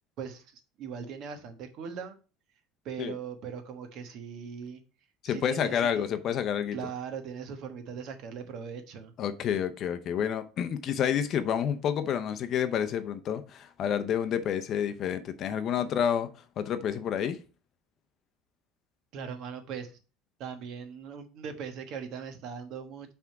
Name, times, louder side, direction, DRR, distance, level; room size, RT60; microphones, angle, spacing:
voice 1, 0.2-2.2 2.8-4.8 5.2-6.0 6.7-9.1 19.1-19.9 20.4-23.1, right 7 dB, 50° right, 1.2 m, -40 dB
voice 2, 5.2-6.8 9.2-16.3 16.6-17.4, left 8 dB, 40° left, 0.6 m, -29 dB
6.0 x 3.5 x 5.7 m
cardioid pair, 155°, 0 cm